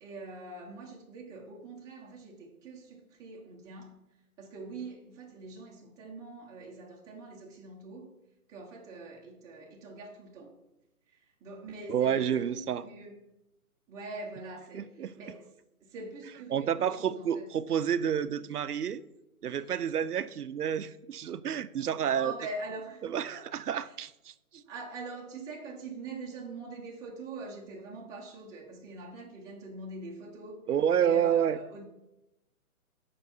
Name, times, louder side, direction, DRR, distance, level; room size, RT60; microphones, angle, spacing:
voice 1, 0.0-4.0 4.4-8.1 8.5-10.6 11.1-13.3 13.9-15.5 15.8-17.5 22.0-23.0 23.3-23.5 23.8-23.9 24.5-30.7 31.0-31.8, right 3 dB, 10° right, -3 dB, 0.8 m, -43 dB
voice 2, 11.9-12.8 14.7-15.1 16.5-19.0 19.4-22.3 23.1-24.3 30.7-31.6, right 9 dB, 90° right, 13 dB, 0.6 m, -29 dB
6.8 x 5.5 x 5.4 m, 0.91 s
hypercardioid pair, 145°, 45 cm